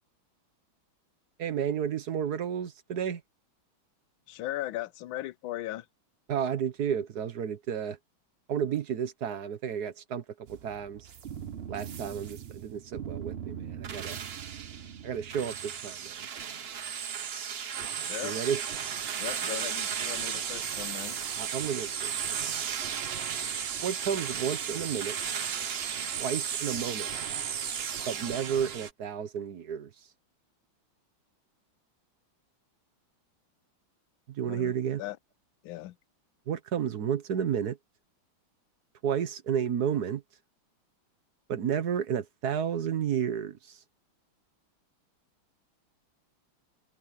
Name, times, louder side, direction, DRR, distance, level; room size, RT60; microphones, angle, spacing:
voice 1, 1.4-3.2 6.3-8.0 8.5-11.1 11.7-14.2 15.0-16.3 18.2-18.6 21.3-22.1 23.8-25.2 26.2-27.1 28.1-29.9 34.3-35.0 36.5-37.8 39.0-40.2 41.5-43.8, right 8 dB, 55° right, 1.5 m, -32 dB
voice 2, 4.3-5.9 18.0-18.4 19.2-21.1 34.4-35.2 35.6-36.0, left 15 dB, 75° left, 1.4 m, -38 dB
sound 1, 10.5-28.9, right 8 dB, 85° right, 0.5 m, -35 dB
omnidirectional pair, 2.3 m